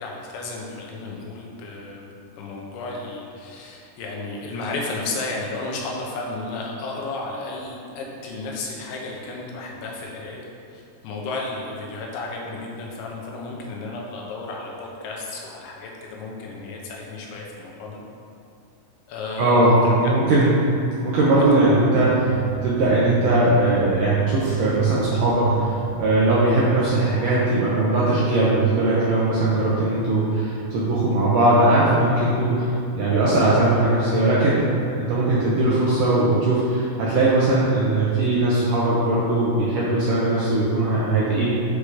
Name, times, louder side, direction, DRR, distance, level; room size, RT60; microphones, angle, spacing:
voice 1, 0.0-10.5 10.7-18.0 19.1-20.3 21.4-21.5, left 3 dB, 85° left, -2 dB, 3.4 m, -33 dB
voice 2, 19.4-20.7 21.0-41.6, right 2 dB, 75° right, -8 dB, 2.0 m, -20 dB
sound 1, 21.6-26.9, right 10 dB, 90° right, 3.0 m, -30 dB
8.7 x 5.0 x 5.0 m, 2.6 s
omnidirectional pair, 5.1 m